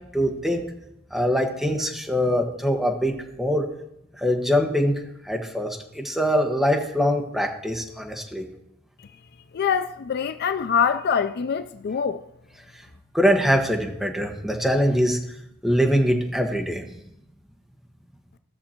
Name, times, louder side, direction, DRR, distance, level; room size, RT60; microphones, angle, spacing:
voice 1, 0.1-0.6 1.1-3.6 4.2-4.9 5.3-8.4 13.1-15.2 15.6-16.8, equal, ahead, 1.3 m, -23 dB
voice 2, 9.5-12.2, left 7 dB, 50° left, 0.4 m, -24 dB
16.5 x 6.4 x 4.4 m
head